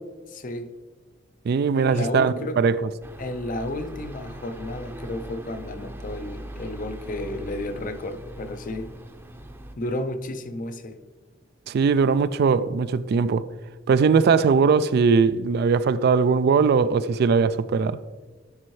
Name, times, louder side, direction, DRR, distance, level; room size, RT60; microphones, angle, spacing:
voice 1, 0.3-0.7 1.7-2.6 3.2-8.9 9.8-11.0, left 1 dB, 45° left, 0.6 m, -32 dB
voice 2, 1.5-2.8 11.7-13.5 13.9-18.0, right 5 dB, 55° right, 0.3 m, -20 dB
sound 1, 3.0-9.7, right 1 dB, 15° right, 0.6 m, -40 dB
12.5 x 5.4 x 3.2 m
head